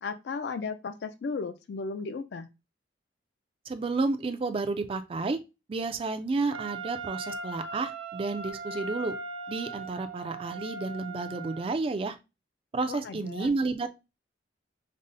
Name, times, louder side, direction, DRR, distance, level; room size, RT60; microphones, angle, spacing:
voice 1, 0.0-2.5 12.9-13.5, left 4 dB, 60° left, 0.4 m, -35 dB
voice 2, 3.7-5.4 5.7-9.2 9.5-12.2 12.7-13.9, right 3 dB, 30° right, 0.3 m, -31 dB
Wind instrument woodwind instrument, 6.5-11.8, right 3 dB, 80° right, 0.5 m, -39 dB
5.2 x 2.0 x 2.5 m
head